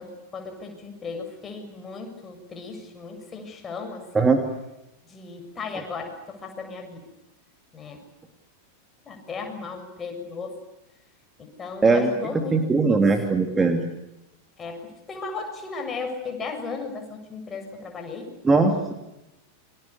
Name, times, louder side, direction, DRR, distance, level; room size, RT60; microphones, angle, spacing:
voice 1, 0.0-4.3 5.0-7.1 7.7-8.0 9.1-10.6 11.4-13.0 14.6-18.3, left 4 dB, 20° left, 4 dB, 7.2 m, -36 dB
voice 2, 12.5-13.8 18.4-18.9, right 3 dB, 15° right, 5 dB, 2.9 m, -19 dB
30.0 x 25.5 x 7.0 m, 0.92 s
figure-of-eight pair, 90°, 0 cm